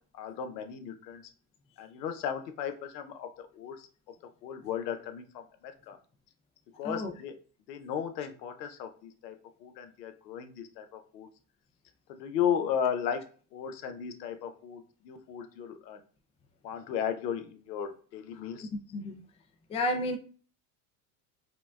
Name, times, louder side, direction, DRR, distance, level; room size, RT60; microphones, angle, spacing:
voice 1, 0.1-1.2 1.8-3.9 4.4-6.0 6.8-7.4 7.7-11.3 12.1-13.2 13.5-16.0 16.6-18.7, left 8 dB, 85° left, 8 dB, 0.7 m, -35 dB
voice 2, 19.7-20.2, left 1 dB, 15° left, 6 dB, 0.3 m, -31 dB
4.9 x 2.1 x 2.3 m, 0.40 s
hypercardioid pair, 90°, 48 cm